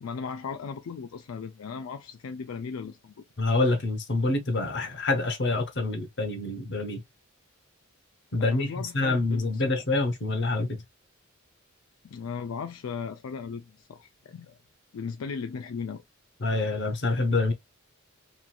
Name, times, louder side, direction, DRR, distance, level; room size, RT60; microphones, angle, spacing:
voice 1, 0.0-3.2 8.4-9.6 12.0-14.6 14.9-16.0, left 5 dB, 80° left, 0.4 m, -37 dB
voice 2, 3.4-7.0 8.3-10.8 16.4-17.5, left 2 dB, 55° left, 0.8 m, -26 dB
3.0 x 2.6 x 2.3 m
head